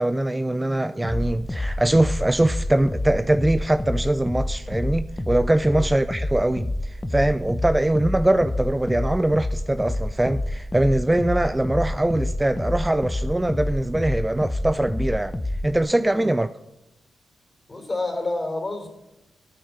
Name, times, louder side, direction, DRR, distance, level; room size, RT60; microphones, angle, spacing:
voice 1, 0.0-15.4 15.6-16.5, right 1 dB, 15° right, 0.5 m, -22 dB
sound 1, 1.0-15.8, left 1 dB, 15° left, 1.0 m, -29 dB
voice 2, 17.7-18.9, left 2 dB, 30° left, 3.6 m, -29 dB
13.0 x 8.9 x 5.4 m
cardioid pair, 75°, 0 cm